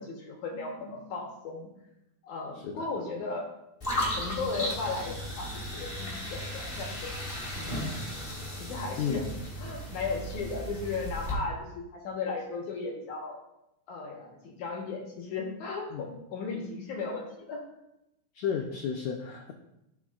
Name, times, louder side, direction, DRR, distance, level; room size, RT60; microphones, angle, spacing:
voice 1, 0.0-1.7 2.2-3.5 4.2-7.2 7.6-8.1 8.6-9.3 9.6-13.4 13.9-17.6, left 4 dB, 65° left, 0 dB, 2.3 m, -36 dB
sound 1, 3.8-11.3, left 1 dB, 20° left, 1.9 m, -35 dB
voice 2, 18.3-19.5, left 7 dB, 85° left, 3 dB, 1.6 m, -32 dB
13.0 x 6.7 x 2.4 m, 0.86 s
omnidirectional pair, 4.1 m